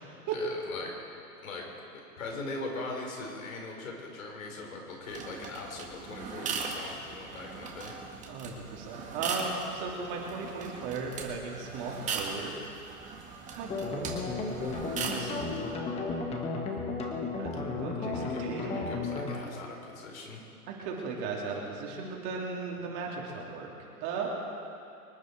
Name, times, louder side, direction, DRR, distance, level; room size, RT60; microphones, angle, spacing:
voice 1, 0.3-0.9 1.4-1.7 2.2-8.0 18.0-20.4, left 2 dB, 60° left, 0 dB, 4.4 m, -40 dB
sound 1, 5.1-15.7, right 5 dB, 15° right, 1.7 m, -39 dB
voice 2, 8.3-12.5 13.6-14.2 15.1-16.0 17.4-18.9 20.7-23.7 24.0-24.4, right 4 dB, 35° right, -2 dB, 3.1 m, -37 dB
sound 2, 13.7-19.4, left 3 dB, 15° left, 1.5 m, -34 dB
25.0 x 10.0 x 4.7 m, 2.7 s
hypercardioid pair, 135°, 45 cm